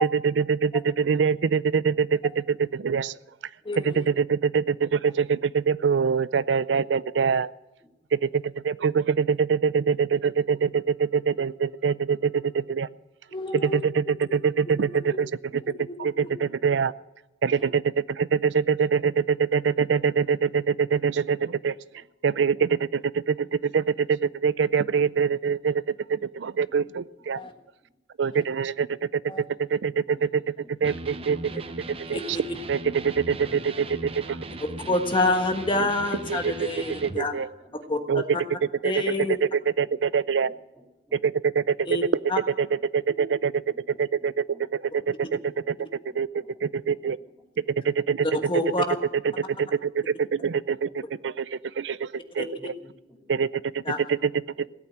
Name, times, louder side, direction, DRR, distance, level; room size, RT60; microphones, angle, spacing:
voice 1, 0.0-3.1 3.8-7.5 8.1-12.9 13.5-16.9 17.4-21.7 22.2-25.8 26.1-27.4 28.2-28.9 29.1-30.4 30.8-31.5 32.1-32.4 32.7-34.4 36.3-36.7 37.0-37.5 38.1-38.2 38.8-39.0 39.3-40.5 41.1-41.7 42.6-43.6 44.0-45.8 46.1-46.3 46.6-47.2 47.8-48.3 49.6-52.7 53.3-53.5 53.7-53.8 54.1-54.3, right 6 dB, 75° right, 18 dB, 0.5 m, -24 dB
voice 2, 3.6-4.0 13.3-13.8 15.1-15.2 16.2-16.3 17.5-17.6 27.4-27.5 29.3-29.4 32.1-32.2 34.9-37.3 37.7-38.2 38.8-39.4 41.9-42.0 42.3-42.4 48.3-48.9 52.4-52.5 53.9-54.0, left 2 dB, 30° left, 5 dB, 1.4 m, -27 dB
Electric guitar, 30.8-37.2, right 2 dB, 30° right, 0.7 m, -38 dB
voice 3, 37.3-37.7 38.7-38.8 40.4-41.2 41.8-41.9 43.7-44.0 44.5-44.6 45.3-45.4 46.1-46.5 48.5-48.6 52.5-53.4 54.6-54.7, equal, ahead, -2 dB, 3.4 m, -54 dB
17.0 x 8.6 x 8.8 m, 1.0 s
head